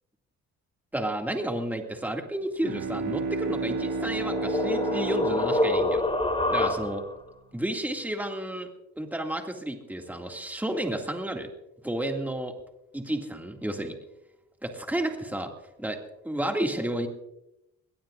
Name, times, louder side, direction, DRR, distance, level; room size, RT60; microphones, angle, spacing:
voice 1, 0.9-6.0 6.5-7.0 7.5-8.7 9.0-11.5 11.8-12.5 12.9-14.0 14.6-15.5 15.8-16.0 16.2-17.1, right 1 dB, 5° right, 3 dB, 2.2 m, -31 dB
Bowed string instrument, 2.4-7.1, right 4 dB, 75° right, 2.1 m, -33 dB
sound 1, 3.4-7.2, left 1 dB, 20° left, 3.6 m, -27 dB
21.0 x 18.5 x 2.5 m, 0.86 s
cardioid pair, 90°, 30 cm